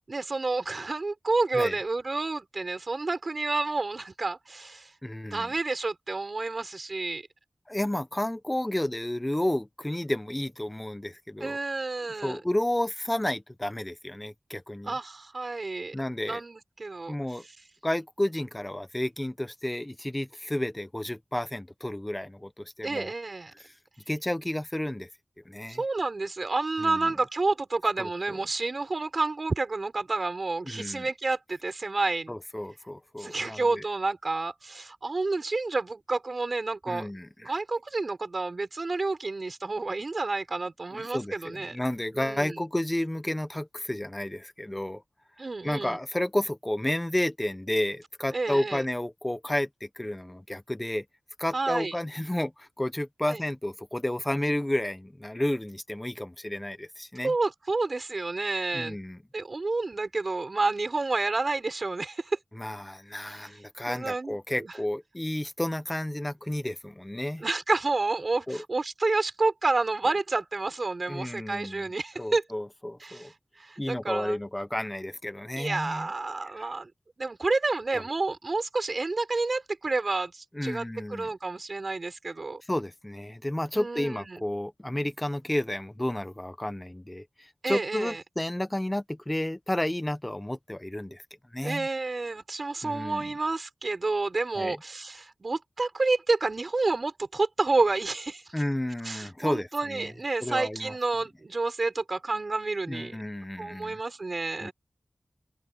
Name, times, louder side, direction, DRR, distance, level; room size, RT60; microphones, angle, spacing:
voice 1, 0.1-4.9 5.3-7.3 11.4-12.4 14.9-16.0 16.3-17.2 22.8-23.5 25.7-32.3 33.2-37.1 37.4-41.8 42.1-42.6 45.4-46.0 48.3-48.8 51.5-51.9 53.3-53.4 57.2-59.0 59.3-62.4 63.3-63.5 63.9-64.7 67.4-72.4 73.0-74.4 75.6-76.9 77.2-82.6 83.7-84.4 87.6-88.2 91.6-98.5 99.0-103.2 103.6-104.7, right 3 dB, 55° right, 5.3 m, -29 dB
voice 2, 5.0-5.5 7.7-11.6 12.2-15.0 15.9-16.4 17.1-17.4 17.8-23.1 23.5-23.7 24.1-25.1 25.4-25.8 26.8-27.1 28.0-28.1 30.6-31.1 32.3-33.8 36.9-37.5 40.9-45.0 45.6-51.0 51.4-57.3 58.7-59.2 62.5-67.4 68.5-68.6 71.1-71.9 72.2-73.3 73.8-76.1 76.6-76.7 77.9-78.0 80.5-81.3 82.7-91.2 91.5-91.9 92.8-93.3 94.6-94.8 98.5-100.1 100.4-100.9 102.9-104.0 104.6-104.7, left 1 dB, 15° left, 1.2 m, -31 dB
open air
wide cardioid pair, 80°, 0 cm